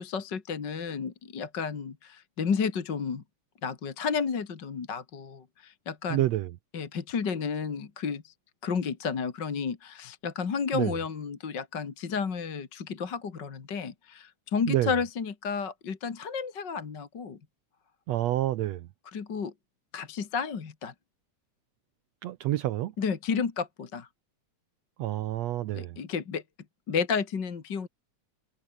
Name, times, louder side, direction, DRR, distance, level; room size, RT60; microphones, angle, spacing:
voice 1, 0.0-3.2 3.6-6.2 6.7-8.3 8.6-17.4 19.1-19.5 19.9-20.9 23.0-24.1 25.7-26.4 26.9-27.9, left 6 dB, 40° left, 2.5 m, -32 dB
voice 2, 6.1-6.5 10.7-10.9 14.7-14.9 18.1-18.9 22.2-22.9 25.0-26.0, right 14 dB, 70° right, 1.8 m, -28 dB
omnidirectional pair, 3.4 m